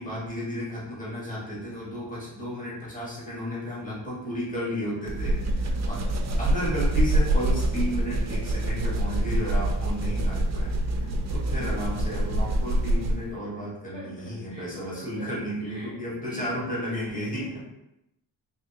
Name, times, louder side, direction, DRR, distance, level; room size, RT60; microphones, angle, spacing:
voice 1, 0.0-6.1 6.4-10.7 11.3-17.6, equal, 20° left, -7 dB, 1.4 m, -33 dB
sound 1, 5.1-13.3, right 1 dB, 40° right, 0.4 m, -25 dB
voice 2, 10.7-11.9 13.9-15.2 15.6-16.7, left 1 dB, 90° left, -6 dB, 1.5 m, -46 dB
3.5 x 3.1 x 2.7 m, 0.85 s
wide cardioid pair, 120°, 43 cm